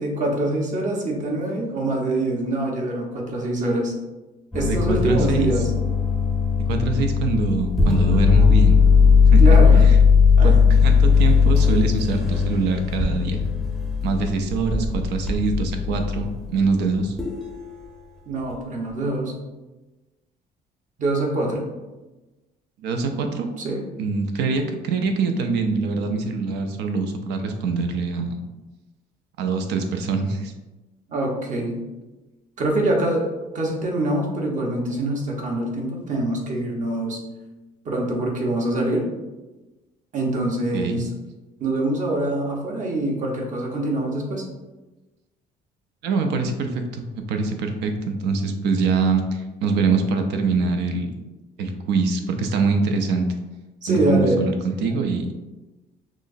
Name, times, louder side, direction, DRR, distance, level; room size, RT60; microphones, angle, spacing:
voice 1, 0.0-3.9 4.5-5.7 9.4-9.8 10.4-10.6 18.3-19.3 21.0-21.7 23.6-23.8 31.1-31.8 32.6-33.3 33.5-37.2 37.8-39.0 40.1-41.1 41.6-44.4 53.8-54.4, right 1 dB, 45° right, -1 dB, 1.0 m, -24 dB
sound 1, 4.5-16.3 17.2-17.5, left 6 dB, ahead, 0.6 m, -17 dB
voice 2, 4.7-5.5 6.7-8.8 9.3-9.4 9.7-9.9 10.4-10.5 10.8-13.4 14.0-17.1 22.8-23.5 24.0-28.4 29.4-30.5 40.7-41.1 46.0-51.1 51.6-53.3 53.9-55.3, right 4 dB, 90° right, 5 dB, 0.5 m, -24 dB
6.1 x 2.1 x 2.6 m, 1.1 s
cardioid pair, 110°, 17 cm